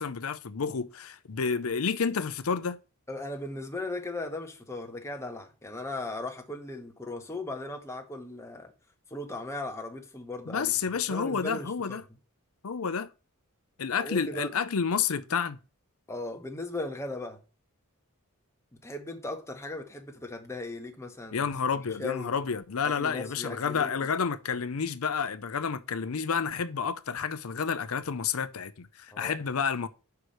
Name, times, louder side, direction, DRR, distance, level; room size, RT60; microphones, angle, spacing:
voice 1, 0.0-2.8 10.5-12.0 12.6-13.1 13.8-15.6 21.3-29.9, left 6 dB, 70° left, 0.6 m, -30 dB
voice 2, 3.1-8.7 9.1-10.7 11.1-12.0 14.0-14.5 16.1-17.4 18.8-21.5 21.9-22.3 22.8-24.1 29.1-29.4, left 2 dB, 10° left, 1.1 m, -37 dB
5.8 x 4.8 x 6.3 m
head